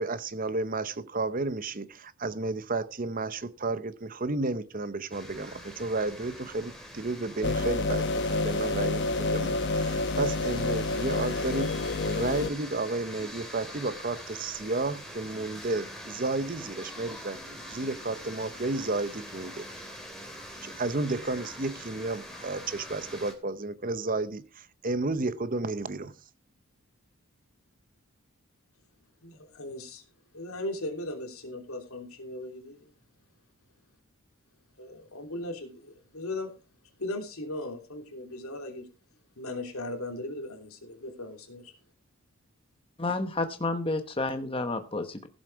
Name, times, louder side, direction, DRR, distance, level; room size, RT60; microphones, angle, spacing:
voice 1, 0.0-19.7 20.6-26.1, right 3 dB, 40° right, 0.7 m, -32 dB
sound 1, 5.1-23.3, equal, ahead, 2.8 m, -44 dB
sound 2, 7.4-12.5, left 2 dB, 50° left, 0.9 m, -28 dB
voice 2, 29.2-30.0 30.3-32.9 34.8-36.6 37.0-38.9 39.4-41.7, left 1 dB, 70° left, 3.1 m, -38 dB
voice 3, 43.0-45.3, left 2 dB, 25° left, 1.0 m, -30 dB
16.0 x 7.4 x 4.6 m
head